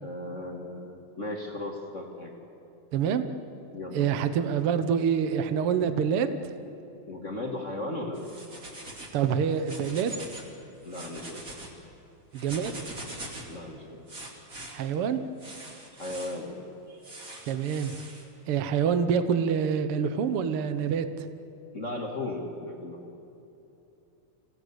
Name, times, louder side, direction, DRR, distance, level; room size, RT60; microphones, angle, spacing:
voice 1, 0.0-2.3 3.7-4.2 7.1-8.3 10.8-11.5 13.5-14.1 16.0-17.1 21.7-23.1, left 1 dB, 30° left, 0 dB, 1.6 m, -36 dB
voice 2, 2.9-3.2 3.9-6.3 9.1-10.1 12.3-12.7 14.7-15.2 17.5-18.0 18.5-21.1, right 7 dB, 65° right, 10 dB, 1.5 m, -26 dB
sound 1, 8.1-9.2 9.5-10.5 10.8-11.7 12.3-13.5 14.1-14.7 15.4-16.4 17.0-18.2, right 1 dB, 25° right, 3.1 m, -42 dB
26.5 x 17.0 x 8.2 m, 2.9 s
omnidirectional pair, 3.6 m